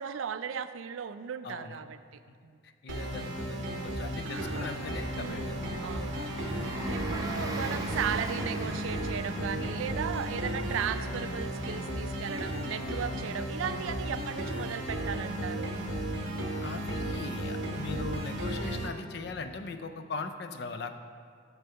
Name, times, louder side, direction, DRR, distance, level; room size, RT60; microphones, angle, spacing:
voice 1, 0.0-2.0 2.4-2.6 4.3-4.7 5.1-5.6 5.8-6.3 6.9-15.7 17.9-18.2, right 7 dB, 80° right, 12 dB, 0.4 m, -36 dB
voice 2, 1.4-1.8 2.6-6.0 9.5-9.8 13.8-14.0 16.6-21.0, left 4 dB, 55° left, 8 dB, 0.4 m, -40 dB
sound 1, 2.9-18.9, right 1 dB, 60° right, 1.0 m, -34 dB
Bus, 4.3-16.6, equal, 20° right, 0.7 m, -42 dB
6.3 x 6.1 x 5.7 m, 2.1 s
head